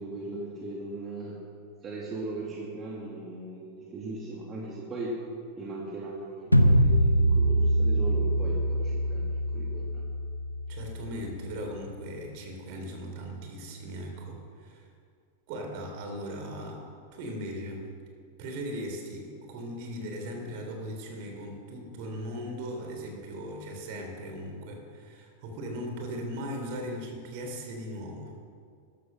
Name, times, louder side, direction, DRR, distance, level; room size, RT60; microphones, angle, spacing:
voice 1, 0.0-1.4 1.8-5.2 5.6-10.0, right 2 dB, 25° right, -3 dB, 2.2 m, -38 dB
sound 1, 6.5-11.6, right 1 dB, 90° left, 0.8 m, -24 dB
voice 2, 10.7-14.9 15.5-16.8 17.1-17.9 18.4-28.3, equal, 45° right, 2 dB, 3.5 m, -38 dB
14.0 x 12.0 x 6.3 m, 2.3 s
figure-of-eight pair, 90°, 0 cm